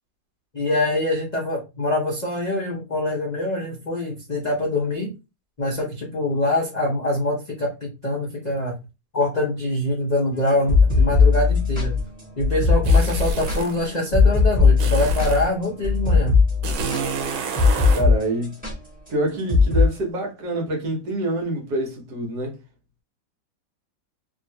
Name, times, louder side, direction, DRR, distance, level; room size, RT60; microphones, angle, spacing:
voice 1, 0.5-5.1 5.6-8.7 9.1-11.9 12.4-16.4, left 1 dB, 50° left, 0.5 m, -24 dB
sound 1, 10.5-18.2 18.4-18.7 19.5-19.9, left 4 dB, 5° right, 1.1 m, -18 dB
sound 2, 12.8-13.8 14.8-15.5 16.6-18.1, right 4 dB, 85° right, 1.3 m, -28 dB
voice 2, 17.9-18.6 19.1-22.6, right 1 dB, 65° right, 1.5 m, -26 dB
3.0 x 2.7 x 2.6 m
omnidirectional pair, 1.9 m